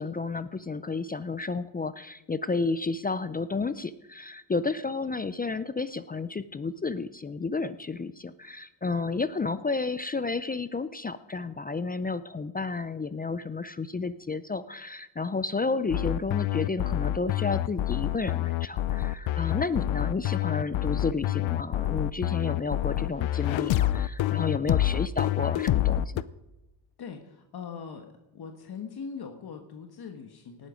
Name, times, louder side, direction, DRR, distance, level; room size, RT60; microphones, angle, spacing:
voice 1, 0.0-26.2, left 4 dB, 20° left, 14 dB, 0.4 m, -31 dB
sound 1, 15.9-26.2, left 14 dB, 80° left, 0.7 m, -27 dB
voice 2, 27.0-28.1 28.3-30.7, left 6 dB, 55° left, 4 dB, 1.4 m, -41 dB
18.5 x 9.5 x 5.1 m, 0.98 s
cardioid pair, 125°, 46 cm